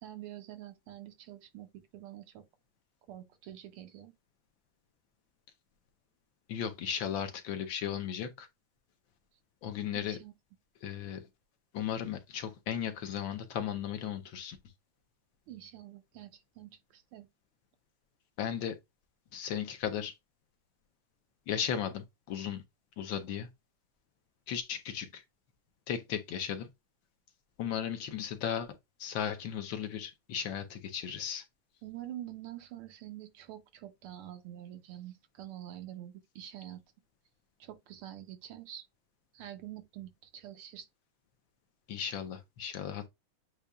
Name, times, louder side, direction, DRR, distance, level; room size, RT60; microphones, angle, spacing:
voice 1, 0.0-2.4 3.1-4.1 9.9-10.3 15.5-17.3 31.8-36.8 37.6-38.8 39.3-40.9, right 12 dB, 85° right, 1.7 m, -46 dB
voice 2, 6.5-8.5 9.6-10.2 10.8-11.2 11.7-14.6 18.4-18.8 19.3-20.1 21.5-22.6 23.0-23.5 24.5-25.2 25.9-26.7 27.6-28.7 29.0-31.4 41.9-43.1, left 9 dB, 70° left, 1.4 m, -36 dB
8.1 x 2.8 x 2.3 m
omnidirectional pair, 2.4 m